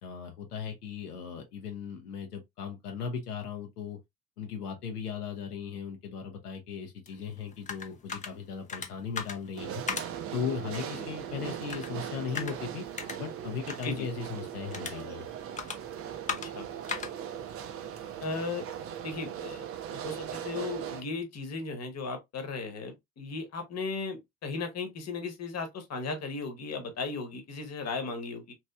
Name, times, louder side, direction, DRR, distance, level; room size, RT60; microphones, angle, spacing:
voice 1, 0.0-4.0 4.4-9.8 10.3-12.8 13.2-15.3, left 6 dB, 85° left, 0.8 m, -37 dB
sound 1, 7.1-18.7, left 5 dB, 15° left, 0.5 m, -42 dB
sound 2, 9.6-21.0, right 10 dB, 30° right, 0.5 m, -39 dB
voice 2, 16.3-16.7 18.2-18.7 19.0-28.5, left 4 dB, 35° left, 1.1 m, -36 dB
3.0 x 2.8 x 2.3 m
figure-of-eight pair, 65°, 45 cm